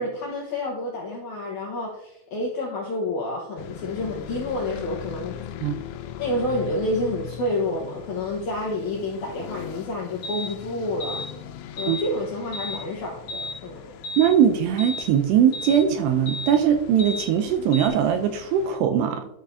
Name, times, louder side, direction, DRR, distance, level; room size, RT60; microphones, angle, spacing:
voice 1, 0.0-5.4 6.2-11.2 11.8-13.9, left 1 dB, 70° left, -4 dB, 1.8 m, -29 dB
sound 1, 3.6-18.8, left 9 dB, 90° left, 3.0 m, -40 dB
sound 2, 10.2-10.5 11.0-11.3 11.8-12.1 12.5-12.8 13.3-13.6 14.0-14.3 14.8-15.1 15.5-15.8 16.3-16.5 17.0-17.3 17.7-17.9, left 2 dB, 45° left, 1.9 m, -33 dB
voice 2, 14.2-19.3, right 9 dB, 80° right, 7 dB, 2.5 m, -20 dB
12.5 x 6.3 x 2.7 m, 0.84 s
omnidirectional pair, 5.2 m